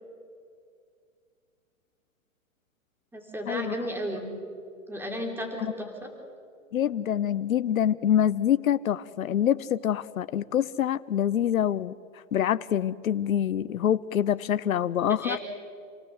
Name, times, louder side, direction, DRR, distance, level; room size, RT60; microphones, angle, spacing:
voice 1, 3.1-4.3 4.9-6.1 15.2-15.4, equal, 5° right, 2 dB, 3.6 m, -33 dB
voice 2, 6.7-11.9 12.3-15.4, left 10 dB, 85° left, 16 dB, 0.8 m, -25 dB
28.5 x 18.5 x 7.9 m, 2.3 s
hypercardioid pair, 130°, 41 cm